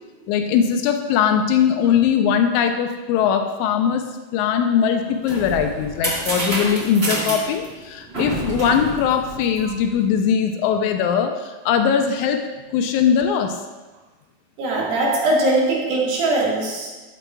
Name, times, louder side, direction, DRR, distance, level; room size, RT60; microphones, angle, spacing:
voice 1, 0.3-12.4 12.7-13.6, left 7 dB, 85° left, 5 dB, 1.7 m, -20 dB
sound 1, 4.9-10.0, right 2 dB, 35° right, 1.0 m, -28 dB
voice 2, 14.6-16.9, right 2 dB, 90° right, -4 dB, 3.8 m, -20 dB
13.5 x 8.9 x 2.4 m, 1.2 s
omnidirectional pair, 4.1 m